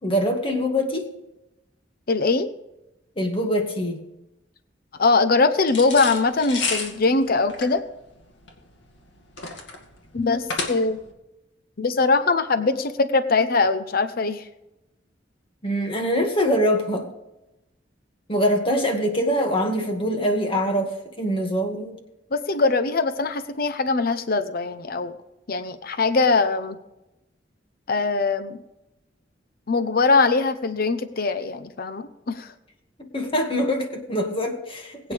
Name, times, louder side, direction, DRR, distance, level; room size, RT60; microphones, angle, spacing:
voice 1, 0.0-1.1 3.2-4.1 15.6-17.1 18.3-22.0 33.0-35.1, equal, 30° left, 3 dB, 2.1 m, -24 dB
voice 2, 2.1-2.5 5.0-7.8 10.1-11.0 11.8-14.5 22.3-25.1 25.5-26.8 27.9-28.6 29.7-32.5 35.0-35.1, left 3 dB, 55° left, 10 dB, 0.8 m, -22 dB
sound 1, 5.7-11.1, left 4 dB, 75° left, 2.3 m, -31 dB
21.0 x 8.9 x 3.5 m, 0.92 s
head